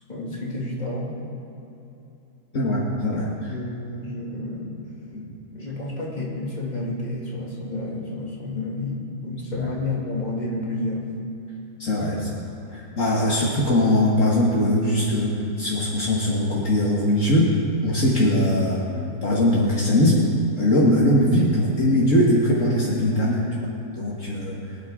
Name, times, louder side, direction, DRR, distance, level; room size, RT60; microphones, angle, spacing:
voice 1, 0.1-1.2 3.1-4.8 5.5-11.1 11.9-12.3 12.6-12.8, left 2 dB, 30° left, -4 dB, 2.5 m, -30 dB
voice 2, 2.5-3.3 5.1-5.4 9.6-9.7 11.8-12.4 12.7-17.5 17.8-18.8 19.2-20.2 20.6-23.7 24.0-24.6, left 1 dB, 55° left, -5 dB, 1.8 m, -21 dB
23.5 x 9.6 x 3.7 m, 2.8 s
omnidirectional pair, 1.6 m